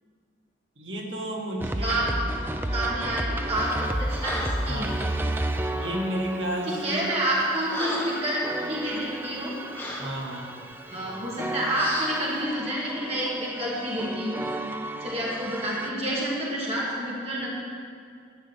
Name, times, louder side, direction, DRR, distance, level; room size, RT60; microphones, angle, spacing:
voice 1, 0.8-2.0 2.7-2.8 4.6-5.1 5.7-7.1 10.0-10.6, equal, 90° right, 0 dB, 1.9 m, -32 dB
sound 1, 1.6-15.9, right 1 dB, 10° right, 0.5 m, -33 dB
voice 2, 1.8-2.1 2.7-4.3 4.6-4.9 6.8-9.5 10.9-14.4 15.0-17.5, right 1 dB, 35° right, -6 dB, 2.3 m, -28 dB
Breathing, 3.6-3.9 4.2-4.7 5.7-6.0 6.7-6.9 7.3-8.3 8.8-9.0 9.7-10.1 10.9-11.1 11.7-12.2, left 1 dB, 15° left, 1.7 m, -35 dB
12.5 x 5.5 x 8.8 m, 2.2 s
head